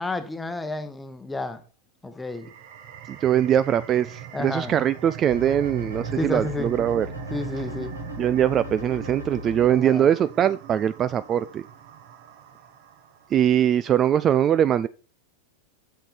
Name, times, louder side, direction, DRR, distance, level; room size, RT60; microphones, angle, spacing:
voice 1, 0.0-1.6 2.0-2.5 4.3-4.8 6.2-6.7 7.3-7.9 9.7-10.1, left 2 dB, 10° left, 1.0 m, -31 dB
sound 1, 2.2-13.4, right 10 dB, 50° right, 1.2 m, -40 dB
voice 2, 3.2-7.1 8.2-11.6 13.3-14.9, right 10 dB, 25° right, 0.3 m, -22 dB
sound 2, 5.3-9.7, left 4 dB, 90° right, 2.8 m, -38 dB
7.7 x 6.9 x 4.1 m
figure-of-eight pair, 90°, 0 cm